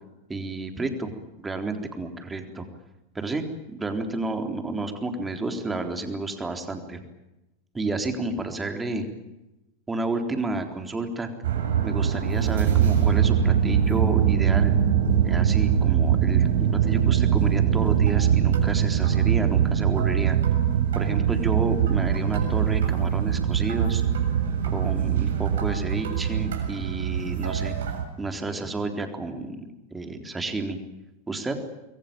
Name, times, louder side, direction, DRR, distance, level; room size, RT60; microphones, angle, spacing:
voice 1, 0.3-1.1 1.4-2.6 3.1-7.0 7.7-9.0 9.9-11.3 11.8-14.8 15.2-16.5 16.8-20.4 21.0-24.0 24.7-27.7 28.2-30.8 31.3-31.6, right 3 dB, 10° right, 6 dB, 3.8 m, -30 dB
sound 1, 11.4-28.0, right 9 dB, 60° right, 7.2 m, -22 dB
27.0 x 22.5 x 9.0 m, 0.97 s
figure-of-eight pair, 90°, 0 cm